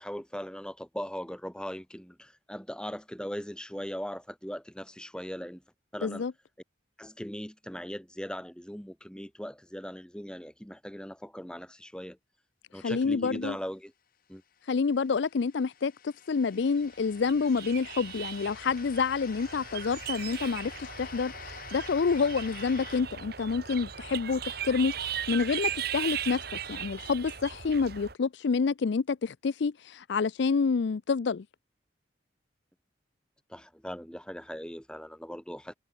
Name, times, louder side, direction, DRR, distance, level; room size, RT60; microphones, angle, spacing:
voice 1, 0.0-5.6 5.9-6.2 7.0-12.2 12.7-13.9 14.3-14.4 33.5-35.8, equal, 5° left, 2.5 m, -39 dB
voice 2, 6.0-6.3 12.7-13.6 14.7-26.4 26.7-31.4, left 5 dB, 60° left, 0.4 m, -28 dB
sound 1, 14.6-23.0, left 7 dB, 45° left, 1.4 m, -48 dB
sound 2, 17.0-28.1, right 9 dB, 50° right, 1.9 m, -38 dB
head